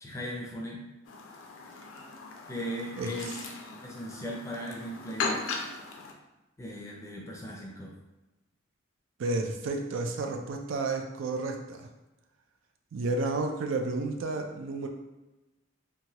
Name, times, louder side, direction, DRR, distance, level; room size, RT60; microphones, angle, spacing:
voice 1, 0.0-0.8 2.5-3.4 3.8-5.4 6.6-7.9, equal, 15° left, -2 dB, 0.5 m, -38 dB
Chirp tweet, 1.0-6.1, left 4 dB, 80° left, 0.4 m, -38 dB
voice 2, 9.2-11.9 12.9-14.9, right 3 dB, 70° right, 3 dB, 0.4 m, -31 dB
2.9 x 2.2 x 2.8 m, 1.0 s
head